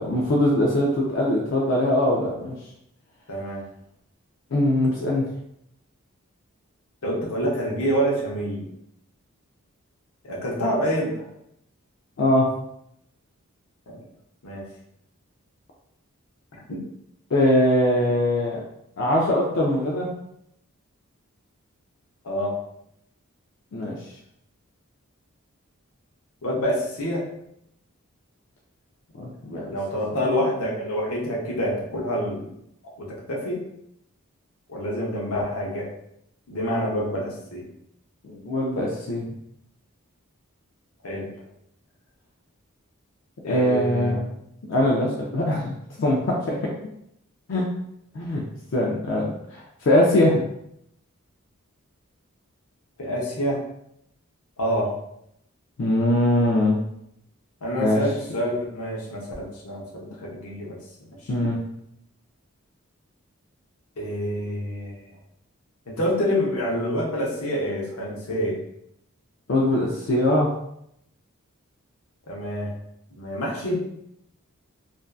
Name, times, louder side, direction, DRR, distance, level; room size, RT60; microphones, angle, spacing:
voice 1, 0.0-2.6 4.5-5.2 12.2-12.5 17.3-18.6 19.0-20.1 23.7-24.0 29.1-29.8 38.2-39.3 43.5-44.2 44.6-46.6 47.5-47.7 48.1-48.4 48.7-50.4 55.8-56.8 57.8-58.0 61.3-61.6 69.5-70.5, left 1 dB, 55° left, -3 dB, 0.4 m, -22 dB
voice 2, 3.3-3.6 7.0-8.7 10.2-11.2 13.9-14.0 14.4-14.6 16.5-16.8 22.2-22.6 26.4-27.3 29.5-32.5 33.0-33.6 34.7-35.9 36.5-37.7 41.0-41.3 43.4-44.2 53.0-53.7 54.6-55.0 57.6-60.8 64.0-65.0 65.9-68.6 72.3-72.7 73.2-73.8, equal, 85° left, -3 dB, 0.7 m, -27 dB
2.5 x 2.3 x 2.2 m, 0.75 s
head